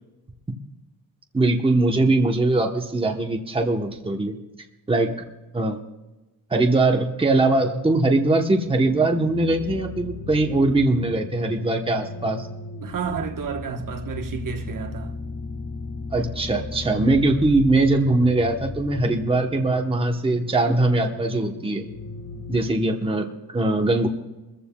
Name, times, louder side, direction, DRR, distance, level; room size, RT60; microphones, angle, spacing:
voice 1, 1.3-4.4 4.9-5.2 5.5-5.8 6.5-12.5 16.1-21.8 22.5-24.1, right 2 dB, 15° right, 1.0 m, -21 dB
sound 1, 8.6-22.7, left 3 dB, 80° left, 1.5 m, -36 dB
voice 2, 12.8-15.2, right 6 dB, 55° right, 1.1 m, -31 dB
22.5 x 14.5 x 2.3 m
wide cardioid pair, 175°, 39 cm